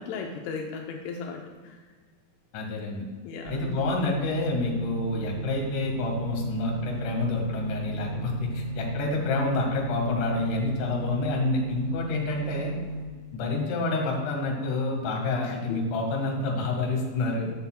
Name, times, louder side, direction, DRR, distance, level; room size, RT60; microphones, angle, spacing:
voice 1, 0.0-1.8 3.2-3.7 15.4-15.8, left 5 dB, 85° left, 2 dB, 2.3 m, -37 dB
voice 2, 2.5-3.0 3.5-12.7 13.3-17.5, left 3 dB, 60° left, 0 dB, 2.4 m, -28 dB
sound 1, 3.5-13.1, right 3 dB, 80° right, 2.4 m, -34 dB
13.5 x 8.2 x 2.2 m, 1.5 s
omnidirectional pair, 5.5 m